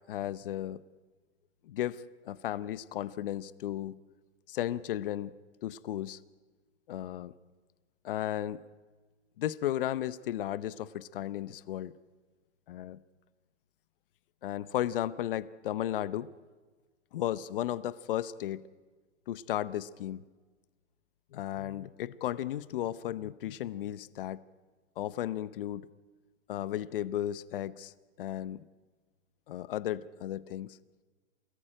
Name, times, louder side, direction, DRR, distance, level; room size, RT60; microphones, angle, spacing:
voice 1, 0.1-0.8 1.6-3.9 4.5-5.3 5.6-6.2 6.9-7.3 8.0-8.6 9.4-11.9 12.7-13.0 14.4-16.3 17.1-18.6 19.3-20.2 21.3-24.4 25.0-25.9 26.5-27.9 28.2-28.6 29.5-30.8, left 12 dB, 45° left, 17 dB, 0.8 m, -34 dB
27.5 x 18.5 x 8.9 m, 1.4 s
hypercardioid pair, 155°, 37 cm